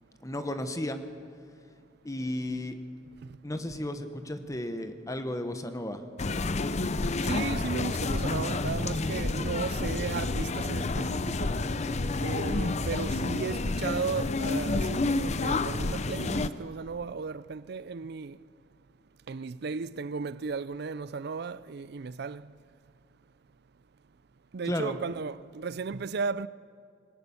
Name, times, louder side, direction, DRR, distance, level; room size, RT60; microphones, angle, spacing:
voice 1, 0.2-1.0 2.0-2.7 3.4-6.1 24.6-25.0, left 1 dB, 20° left, 1.1 m, -34 dB
sound 1, 6.2-16.5, left 3 dB, 40° left, 0.6 m, -29 dB
voice 2, 7.2-11.5 12.2-18.4 19.3-22.4 24.5-26.5, right 5 dB, 60° right, 0.5 m, -35 dB
21.0 x 18.5 x 7.1 m
head